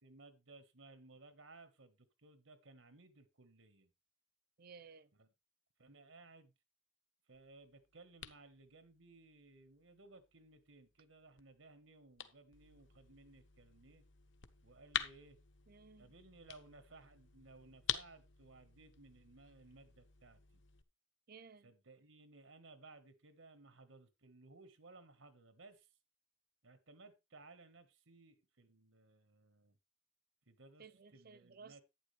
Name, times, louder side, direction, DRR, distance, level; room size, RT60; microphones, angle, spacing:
voice 1, 0.0-3.9 5.1-5.3 5.8-6.5 7.3-14.0 14.6-15.4 16.0-20.6 21.6-25.9 26.6-29.8 30.5-31.8, right 3 dB, 90° right, 1.5 m, -60 dB
voice 2, 4.6-5.1 15.7-16.1 21.3-21.7 30.8-31.8, right 5 dB, 50° right, 0.7 m, -57 dB
sound 1, 7.3-20.8, left 9 dB, 70° left, 1.1 m, -48 dB
11.0 x 9.4 x 3.4 m
head